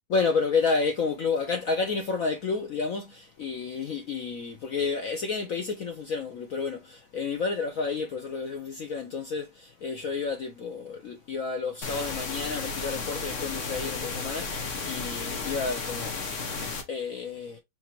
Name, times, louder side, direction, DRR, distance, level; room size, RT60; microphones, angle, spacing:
voice 1, 0.1-16.2 16.9-17.6, left 4 dB, 65° left, 0.8 m, -30 dB
sound 1, 11.8-16.8, left 4 dB, 45° left, 1.2 m, -33 dB
4.3 x 4.0 x 2.8 m
omnidirectional pair, 2.2 m